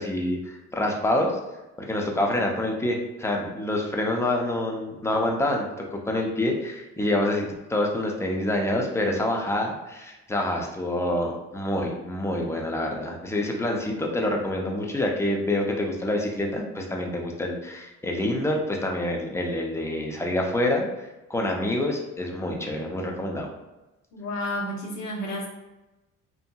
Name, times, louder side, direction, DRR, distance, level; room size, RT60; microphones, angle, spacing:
voice 1, 0.0-1.3 1.8-23.5, left 1 dB, 10° left, 0 dB, 0.5 m, -27 dB
voice 2, 24.1-25.5, left 1 dB, 65° left, -3 dB, 0.9 m, -31 dB
2.7 x 2.7 x 2.2 m, 1.0 s
cardioid pair, 90°, 30 cm